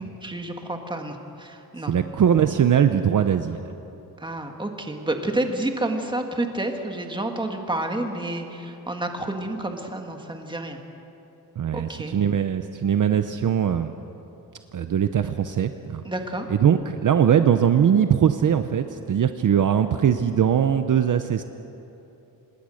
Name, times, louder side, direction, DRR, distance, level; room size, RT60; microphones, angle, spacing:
voice 1, 0.0-1.9 4.2-10.8 11.7-12.2 16.0-16.5, right 1 dB, 10° right, 3 dB, 1.7 m, -29 dB
voice 2, 1.9-3.6 11.6-13.9 14.7-16.0 16.6-21.4, right 8 dB, 55° right, 9 dB, 0.7 m, -21 dB
26.0 x 20.0 x 6.4 m, 2.9 s
wide cardioid pair, 170°, 39 cm